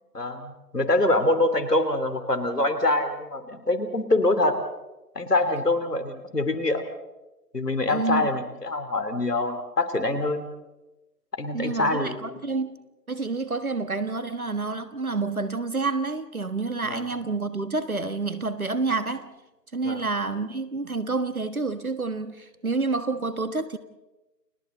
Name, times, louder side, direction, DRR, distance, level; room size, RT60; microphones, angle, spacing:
voice 1, 0.1-4.6 5.1-6.8 7.5-10.5 11.3-12.5 16.8-17.0 19.8-20.0, left 2 dB, 70° left, 3.1 m, -25 dB
voice 2, 7.9-8.3 11.5-12.8 13.1-19.3 19.7-23.8, right 3 dB, 60° right, 1.6 m, -28 dB
29.5 x 25.0 x 3.9 m
figure-of-eight pair, 180°, 49 cm